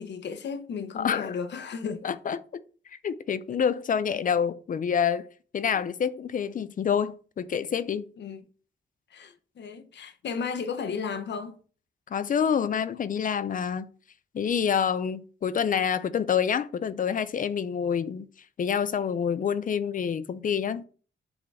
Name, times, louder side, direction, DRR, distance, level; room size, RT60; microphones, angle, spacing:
voice 1, 0.0-2.1 8.2-8.4 9.1-11.6, left 6 dB, 65° left, 0.9 m, -34 dB
voice 2, 1.0-1.4 2.0-2.6 3.0-5.3 5.5-8.1 12.1-13.9 14.3-18.3 18.6-20.8, left 7 dB, 45° left, 0.5 m, -27 dB
7.4 x 3.8 x 6.0 m
wide cardioid pair, 165°, 20 cm